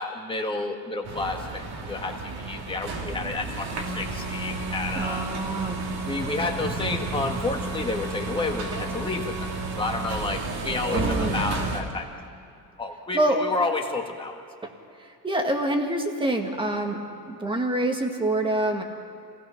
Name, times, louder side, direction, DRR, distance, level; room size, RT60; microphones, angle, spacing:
voice 1, 0.0-5.2 6.0-9.5 9.8-12.1 12.8-14.4, left 3 dB, 15° left, 1 dB, 1.8 m, -30 dB
sound 1, 1.0-11.8, right 3 dB, 65° right, 2.9 m, -31 dB
voice 2, 5.0-5.8 10.9-11.4 13.1-13.4 14.6-14.7 15.0-18.8, right 1 dB, 10° right, 3 dB, 1.8 m, -26 dB
27.0 x 17.5 x 5.9 m, 2.6 s
cardioid pair, 160°, 39 cm